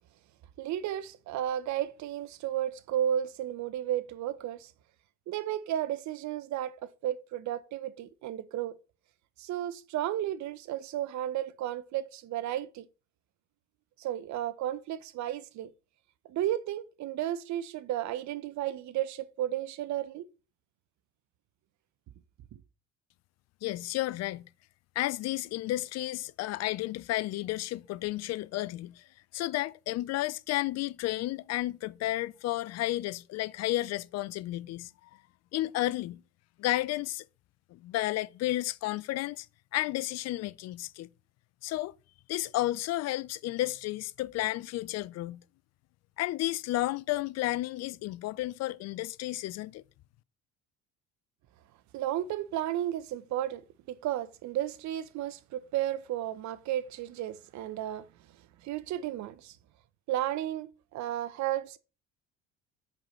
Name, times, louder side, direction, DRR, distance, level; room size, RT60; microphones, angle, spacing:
voice 1, 0.6-4.7 5.3-8.8 9.4-12.9 14.0-15.7 16.3-20.3 22.5-22.6 51.9-53.6 53.9-58.1 58.6-59.6 60.1-61.8, right 12 dB, 55° right, 0.7 m, -33 dB
voice 2, 23.6-24.4 25.0-29.0 29.3-34.9 35.5-36.2 36.6-37.2 37.7-39.5 39.7-41.1 41.6-41.9 42.3-45.4 46.2-49.8, left 16 dB, 50° left, 0.4 m, -32 dB
5.3 x 4.4 x 5.4 m
hypercardioid pair, 70°, 34 cm